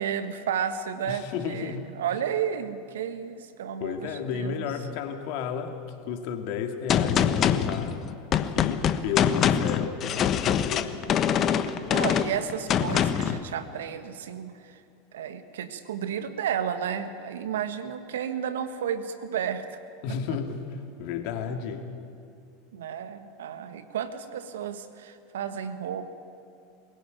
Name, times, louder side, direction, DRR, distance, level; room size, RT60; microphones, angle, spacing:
voice 1, 0.0-4.7 11.9-14.8 15.1-19.6 22.7-26.1, right 8 dB, 75° right, 10 dB, 1.5 m, -32 dB
voice 2, 1.0-1.9 3.8-8.0 8.5-11.0 20.0-21.9, left 7 dB, 60° left, 5 dB, 2.2 m, -33 dB
Gunshot gunfire, 6.9-13.4, left 8 dB, 40° left, 1.1 m, -24 dB
22.5 x 16.0 x 9.6 m, 2.5 s
hypercardioid pair, 85°, 0 cm